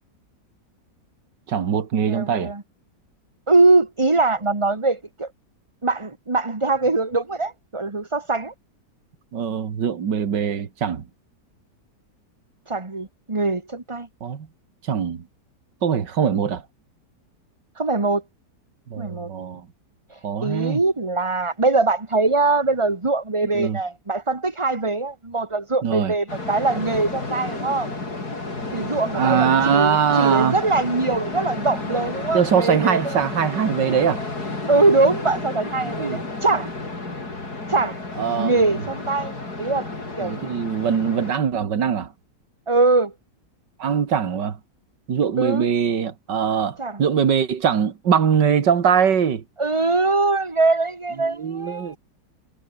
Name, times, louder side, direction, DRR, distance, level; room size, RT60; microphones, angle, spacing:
voice 1, 1.5-2.5 9.3-11.0 14.2-14.5 14.9-15.2 15.8-16.6 18.9-19.7 20.2-20.8 23.5-23.8 25.8-26.1 29.1-30.6 32.3-34.2 36.0-36.2 38.2-38.8 40.2-42.1 43.8-44.6 45.1-49.4 51.2-52.0, right 7 dB, 80° right, 2.4 m, -22 dB
voice 2, 2.0-2.6 3.5-5.3 5.8-8.5 12.7-14.1 17.8-18.2 19.0-19.3 20.1-27.9 28.7-33.1 34.7-36.7 37.7-38.0 38.3-39.3 39.6-39.9 40.2-40.5 42.7-43.1 45.4-45.7 46.8-47.0 49.6-52.0, right 3 dB, 20° right, 1.7 m, -22 dB
sound 1, 26.3-41.3, left 3 dB, 60° left, 5.5 m, -31 dB
omnidirectional pair, 1.9 m